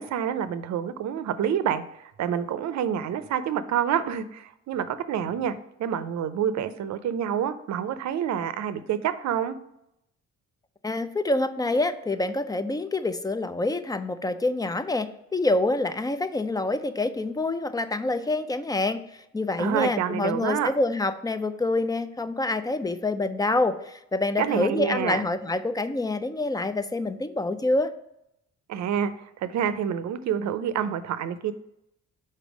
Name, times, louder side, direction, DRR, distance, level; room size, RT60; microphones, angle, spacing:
voice 1, 0.0-5.5 5.8-9.6 19.6-20.7 24.4-25.3 28.7-31.5, right 9 dB, 65° right, 12 dB, 0.6 m, -28 dB
voice 2, 10.8-27.9, left 2 dB, 15° left, 11 dB, 0.4 m, -26 dB
5.3 x 4.2 x 5.0 m, 0.81 s
cardioid pair, 90°, 30 cm